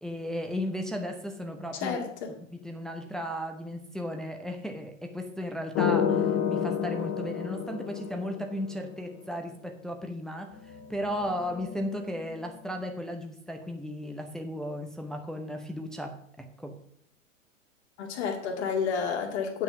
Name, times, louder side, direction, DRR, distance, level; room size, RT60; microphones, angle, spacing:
voice 1, 0.0-2.0 2.5-16.7, equal, ahead, 0.7 m, -35 dB
voice 2, 1.7-2.3 18.0-19.6, left 6 dB, 55° left, 2.3 m, -30 dB
sound 1, 5.7-8.8 10.6-12.3, left 8 dB, 30° left, 1.0 m, -30 dB
9.1 x 6.1 x 5.8 m
figure-of-eight pair, 95°, 39 cm